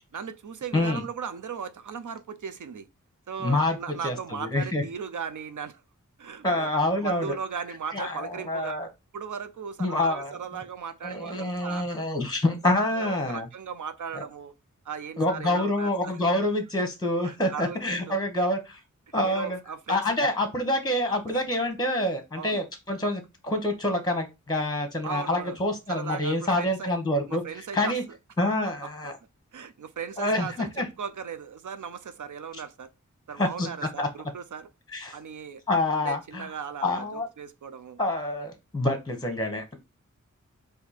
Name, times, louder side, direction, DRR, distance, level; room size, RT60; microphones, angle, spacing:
voice 1, 0.1-2.9 3.3-5.8 6.2-6.7 7.0-8.8 9.1-11.9 12.9-14.5 14.8-16.2 17.2-18.5 19.2-20.2 21.3-21.4 22.4-22.6 25.0-25.6 25.9-27.0 27.3-28.0 29.5-32.9 33.3-34.7 35.1-35.6 36.0-38.0, right 6 dB, 75° right, 0.5 m, -37 dB
voice 2, 3.4-3.8 4.0-4.1 4.4-4.8 6.4-7.3 7.9-8.9 9.8-10.4 11.0-13.5 14.1-14.2 15.2-18.8 19.1-19.6 19.9-27.4 27.7-28.0 28.4-29.1 30.2-30.8 33.4-33.7 34.0-34.1 34.9-35.2 35.7-36.5 36.8-37.3 38.0-39.8, left 1 dB, 15° left, 1.0 m, -27 dB
4.3 x 2.6 x 4.1 m
wide cardioid pair, 50°, 31 cm